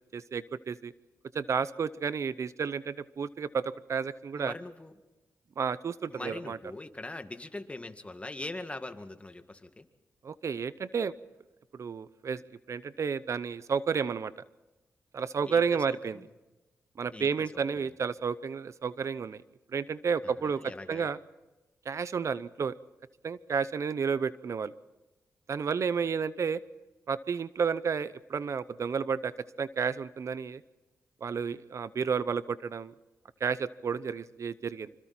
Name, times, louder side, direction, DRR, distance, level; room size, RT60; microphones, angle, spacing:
voice 1, 0.1-0.9 1.3-4.5 5.6-6.6 10.2-11.1 11.7-12.4 12.7-14.3 15.1-16.2 17.0-19.4 19.7-21.2 21.9-22.7 23.2-24.7 25.5-26.6 27.1-29.3 29.6-30.6 31.2-32.9 33.4-34.9, right 6 dB, 60° right, 16 dB, 0.7 m, -31 dB
voice 2, 4.3-4.9 6.1-9.8 15.4-16.3 17.1-17.9 20.2-21.1, left 2 dB, 20° left, 7 dB, 2.0 m, -42 dB
26.5 x 25.5 x 4.4 m, 1.1 s
cardioid pair, 65°, 6 cm